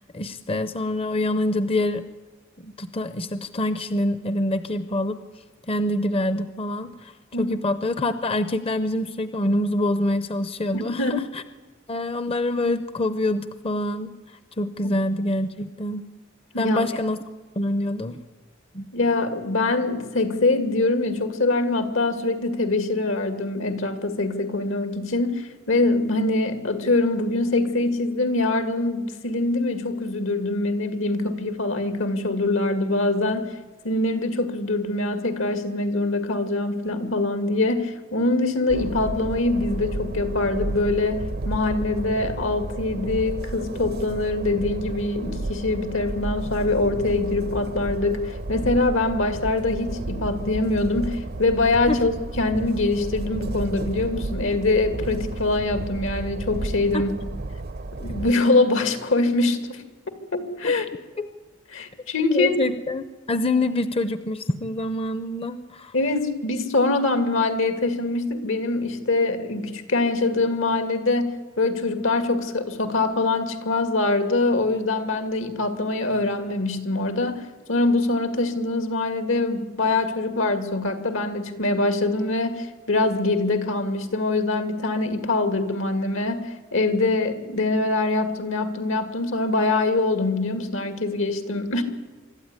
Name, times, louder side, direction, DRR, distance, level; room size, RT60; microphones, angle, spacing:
voice 1, 0.0-2.1 2.6-5.2 5.7-7.1 7.4-11.4 11.9-14.1 14.6-16.1 16.6-17.2 17.6-18.2 18.7-18.9 51.9-52.0 56.9-57.0 61.2-61.3 62.3-65.9, left 1 dB, 30° left, 12 dB, 0.7 m, -26 dB
voice 2, 10.7-11.2 16.5-16.9 18.9-33.5 33.8-57.1 57.9-59.8 60.3-60.9 61.7-62.6 65.9-91.8, left 2 dB, 80° left, 9 dB, 2.3 m, -24 dB
Train, 38.7-58.3, right 2 dB, 50° right, 0.6 m, -32 dB
24.5 x 13.0 x 9.7 m, 1.3 s
head